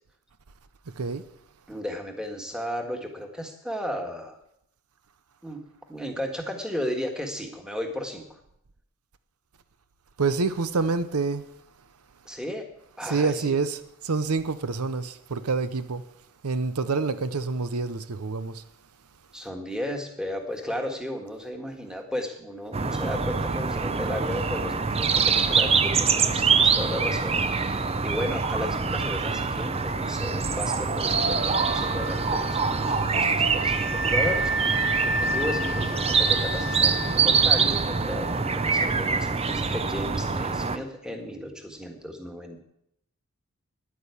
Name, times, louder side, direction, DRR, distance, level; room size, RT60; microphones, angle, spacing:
voice 1, 1.7-4.4 5.4-5.6 5.9-8.4 12.2-12.6 13.0-13.6 19.3-42.6, left 1 dB, 5° right, 1.7 m, -34 dB
voice 2, 10.2-11.4 13.0-16.0 16.4-18.6, right 4 dB, 85° right, 0.7 m, -27 dB
sound 1, 22.7-40.8, right 5 dB, 25° right, 0.6 m, -24 dB
Wind instrument woodwind instrument, 31.3-38.8, right 1 dB, 55° right, 1.7 m, -32 dB
10.5 x 9.6 x 8.3 m
head